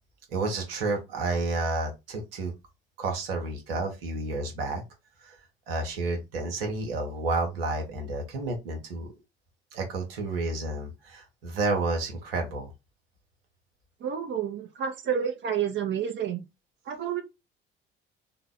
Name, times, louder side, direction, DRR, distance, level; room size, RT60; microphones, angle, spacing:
voice 1, 0.3-2.5 3.0-4.8 5.2-5.4 5.7-9.1 9.7-12.7, right 3 dB, 75° right, 1.1 m, -30 dB
voice 2, 14.0-16.4 16.9-17.2, right 8 dB, 40° right, 0.8 m, -29 dB
3.8 x 2.3 x 3.7 m
figure-of-eight pair, 55°, 30 cm